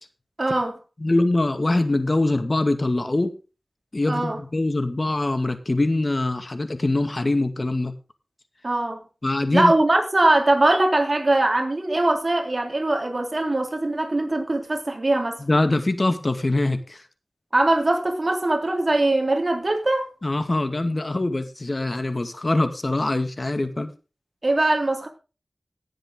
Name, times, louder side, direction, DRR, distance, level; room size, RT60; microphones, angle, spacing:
voice 1, 0.4-0.8 4.1-4.4 8.6-9.0 9.5-15.4 17.5-20.1 24.4-25.1, right 2 dB, 45° right, 3.4 m, -21 dB
voice 2, 1.0-3.3 3.9-8.0 9.2-9.7 15.4-17.0 20.2-23.9, left 2 dB, 45° left, 2.1 m, -23 dB
18.0 x 7.8 x 3.9 m
wide cardioid pair, 55°, 0 cm